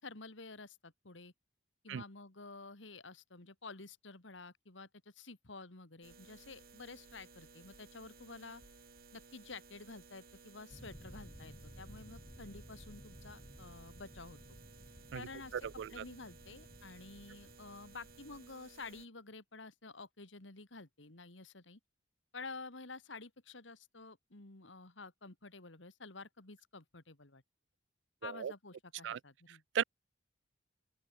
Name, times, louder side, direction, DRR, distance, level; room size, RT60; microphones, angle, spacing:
voice 1, 0.0-1.3 1.8-4.9 5.1-8.6 9.1-14.4 15.1-15.5 15.9-21.8 22.3-27.4 28.2-29.6, left 3 dB, 80° left, 2.5 m, -50 dB
sound 1, 6.0-19.1, right 4 dB, 50° right, 4.1 m, -59 dB
sound 2, 10.7-18.5, equal, 20° left, 3.1 m, -55 dB
voice 2, 15.5-16.0 28.2-28.5 29.0-29.2 29.5-29.8, right 8 dB, 70° right, 0.3 m, -37 dB
open air
head